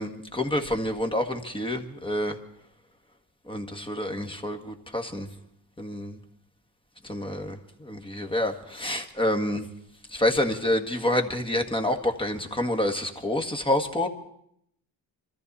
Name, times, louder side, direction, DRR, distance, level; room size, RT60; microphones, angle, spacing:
voice 1, 0.0-2.4 3.5-5.3 5.8-6.2 7.1-9.6 10.1-14.1, left 1 dB, 10° left, 5 dB, 1.7 m, -28 dB
24.5 x 14.0 x 4.2 m, 0.72 s
cardioid pair, 80°, 44 cm